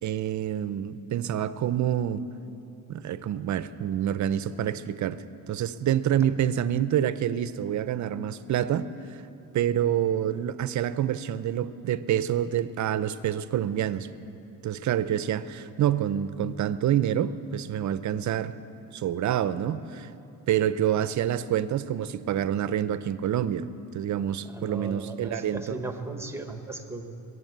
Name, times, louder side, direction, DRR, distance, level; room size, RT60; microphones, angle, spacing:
voice 1, 0.0-2.3 2.9-9.2 9.5-14.1 14.6-18.5 18.9-20.1 20.5-25.8, right 10 dB, 50° right, 14 dB, 0.5 m, -27 dB
voice 2, 24.4-27.1, right 3 dB, 5° right, 6 dB, 1.0 m, -37 dB
22.0 x 8.0 x 8.0 m, 2.9 s
cardioid pair, 145°, 39 cm